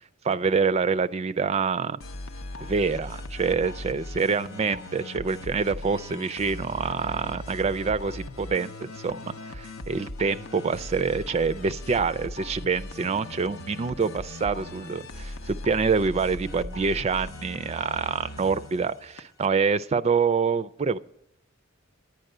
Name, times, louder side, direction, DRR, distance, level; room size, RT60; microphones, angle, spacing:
voice 1, 0.2-2.0 2.6-21.0, right 5 dB, 35° right, 12 dB, 0.3 m, -26 dB
sound 1, 2.0-19.5, left 1 dB, 90° left, 0.6 m, -39 dB
10.5 x 8.9 x 6.6 m, 0.79 s
head